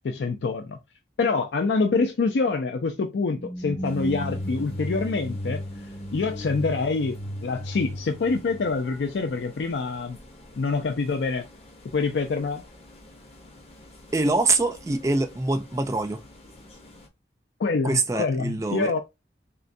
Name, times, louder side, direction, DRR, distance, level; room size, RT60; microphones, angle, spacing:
voice 1, 0.0-0.8 1.2-5.6 6.1-7.2 7.4-10.2 10.6-11.4 11.9-12.6 17.6-19.0, left 4 dB, 80° left, 0.4 m, -26 dB
sound 1, 3.3-9.3, equal, 55° left, 1.8 m, -34 dB
sound 2, 3.8-17.1, left 1 dB, 35° left, 0.7 m, -50 dB
voice 2, 14.1-16.2 17.8-18.9, right 3 dB, 15° right, 0.3 m, -24 dB
3.7 x 2.2 x 2.5 m
head